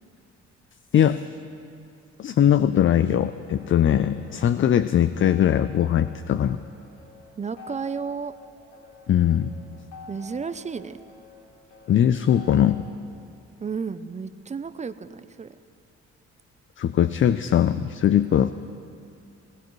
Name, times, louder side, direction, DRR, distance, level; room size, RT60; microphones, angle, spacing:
voice 1, 2.2-6.6 9.1-9.5 11.9-12.8 16.8-18.5, left 10 dB, 40° left, 12 dB, 0.4 m, -20 dB
sound 1, 3.5-12.7, left 3 dB, 85° left, 3.3 m, -48 dB
voice 2, 7.4-8.3 10.1-11.0 13.6-15.6, right 5 dB, 25° right, 13 dB, 0.5 m, -32 dB
20.5 x 18.5 x 3.2 m, 2.6 s
cardioid pair, 90°, 30 cm